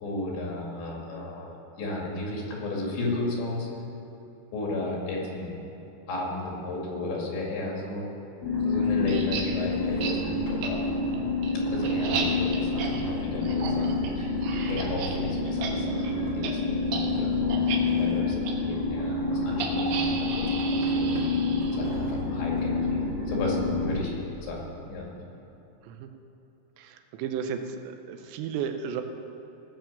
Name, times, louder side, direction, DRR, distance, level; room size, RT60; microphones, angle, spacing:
voice 1, 0.0-3.7 4.5-5.6 6.1-8.0 8.6-10.8 11.7-20.5 20.7-21.2 21.7-24.1 24.4-25.1, left 2 dB, 90° left, -2 dB, 4.6 m, -34 dB
sound 1, 8.4-23.9, left 3 dB, 35° left, 2.1 m, -28 dB
sound 2, 9.1-9.4 10.0-10.1 10.6-10.7 11.1-15.1 15.4-15.7 16.0-16.1 16.4-16.5 16.9-17.1 17.5-17.8 18.4-18.5 19.6-21.9, right 6 dB, 75° right, 2.9 m, -34 dB
voice 2, 26.8-29.0, right 7 dB, 90° right, 7 dB, 3.1 m, -34 dB
18.0 x 6.1 x 7.0 m, 3.0 s
omnidirectional pair, 5.0 m